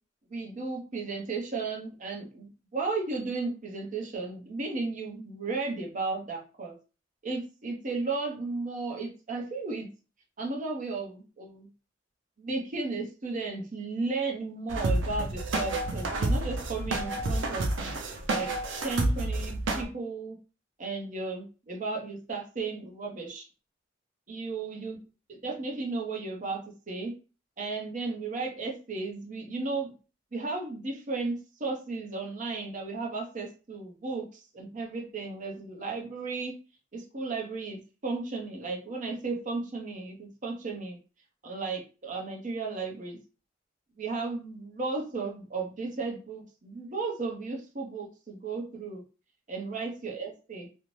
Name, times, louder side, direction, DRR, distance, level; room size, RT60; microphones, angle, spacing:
voice 1, 0.3-6.7 7.2-9.9 10.4-11.7 12.4-17.7 18.3-18.5 18.8-20.4 20.8-23.4 24.3-25.0 25.3-26.6 26.9-27.1 27.6-29.9 30.3-36.6 36.9-41.0 41.4-43.2 44.0-49.0 49.5-50.7, right 3 dB, 45° right, 1 dB, 0.7 m, -34 dB
sound 1, 14.7-19.8, right 2 dB, 90° right, 0.5 m, -29 dB
2.5 x 2.0 x 3.0 m, 0.34 s
head